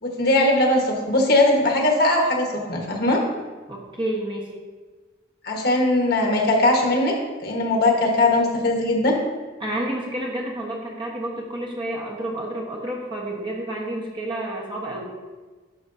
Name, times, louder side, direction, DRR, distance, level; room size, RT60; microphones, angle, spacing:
voice 1, 0.0-3.2 5.4-7.1 7.4-9.1, left 2 dB, 55° left, 0 dB, 1.4 m, -20 dB
voice 2, 3.7-4.5 9.6-15.1, right 1 dB, 25° right, -2 dB, 1.2 m, -30 dB
11.5 x 6.2 x 2.7 m, 1.4 s
head